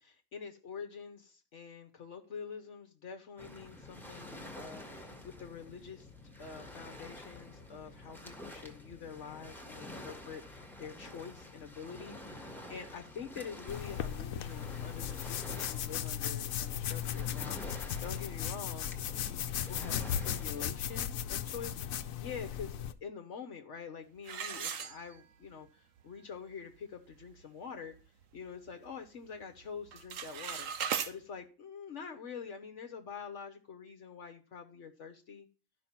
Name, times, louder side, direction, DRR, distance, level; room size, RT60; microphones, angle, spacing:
voice 1, 0.0-6.1 6.4-28.0 28.3-35.5, left 6 dB, 65° left, 5 dB, 1.3 m, -46 dB
Waves surf, 3.4-20.7, left 1 dB, ahead, 1.6 m, -49 dB
sound 1, 13.7-22.9, left 9 dB, 85° left, 1.1 m, -37 dB
sound 2, 24.2-25.5 26.0-26.1 26.6-26.7 27.1-27.4 27.9-29.0 29.2-29.6 29.8-31.1, right 7 dB, 75° right, 1.3 m, -38 dB
12.5 x 5.3 x 5.7 m, 0.36 s
omnidirectional pair, 1.4 m